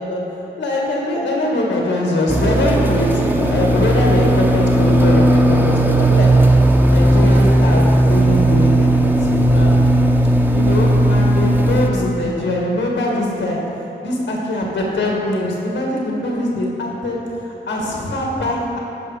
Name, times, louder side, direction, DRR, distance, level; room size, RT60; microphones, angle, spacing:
voice 1, 0.0-6.3 6.5-9.8 10.5-13.6 14.0-18.8, left 1 dB, 90° left, -2 dB, 1.8 m, -22 dB
sound 1, 2.3-11.9, right 1 dB, 10° right, 0.8 m, -15 dB
11.5 x 5.6 x 5.0 m, 2.8 s
cardioid pair, 55°, 19 cm